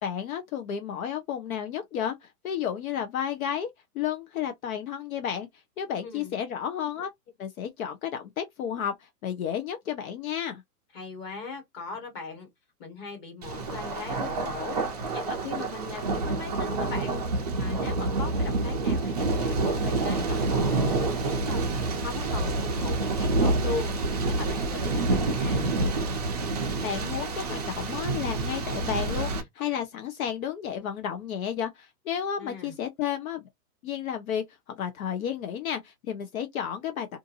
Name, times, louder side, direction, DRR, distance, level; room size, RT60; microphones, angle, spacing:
voice 1, 0.0-3.7 3.9-5.5 5.8-7.1 7.4-10.6 26.8-33.4 33.8-34.4 34.8-37.1, left 9 dB, 60° left, 0.7 m, -32 dB
voice 2, 6.0-6.4 10.9-12.5 12.8-14.8 15.1-21.6 22.0-24.0 24.3-25.7 32.4-32.7, left 4 dB, 20° left, 1.3 m, -39 dB
Thunder, 13.4-29.4, right 3 dB, 30° right, 0.4 m, -28 dB
2.6 x 2.5 x 2.6 m
hypercardioid pair, 155°, 47 cm